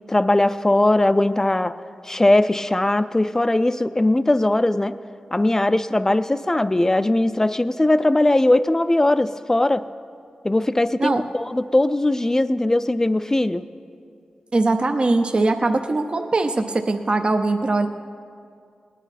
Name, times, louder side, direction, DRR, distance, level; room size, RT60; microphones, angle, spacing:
voice 1, 0.1-1.7 2.1-4.9 5.3-9.8 10.4-13.7, left 1 dB, 20° left, 13 dB, 0.4 m, -19 dB
voice 2, 14.5-17.9, right 2 dB, 45° right, 5 dB, 0.6 m, -21 dB
19.0 x 9.1 x 4.2 m, 2.3 s
cardioid pair, 60°, 2 cm